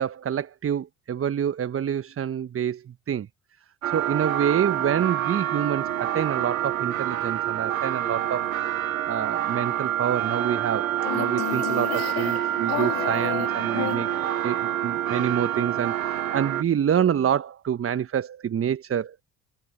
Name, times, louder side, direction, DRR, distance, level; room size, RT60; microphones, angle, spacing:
voice 1, 0.0-3.3 3.9-8.5 9.1-10.9 11.1-14.1 14.4-19.1, right 9 dB, 35° right, 1.4 m, -27 dB
sound 1, 3.8-16.6, right 11 dB, 80° right, 0.8 m, -27 dB
sound 2, 11.0-14.6, left 25 dB, 60° left, 3.0 m, -32 dB
figure-of-eight pair, 50°, 40 cm